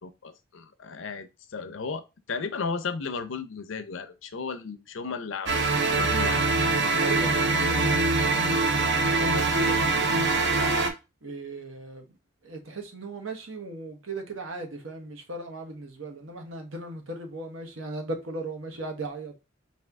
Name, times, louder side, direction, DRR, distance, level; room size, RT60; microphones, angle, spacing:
voice 1, 0.0-2.0 2.3-5.6 5.9-6.4, left 5 dB, 70° left, 0.6 m, -34 dB
sound 1, 5.5-10.9, right 3 dB, 60° right, 0.8 m, -23 dB
voice 2, 7.0-10.7 11.2-12.0 12.4-19.3, right 2 dB, 80° right, 1.1 m, -38 dB
4.2 x 2.8 x 3.5 m
head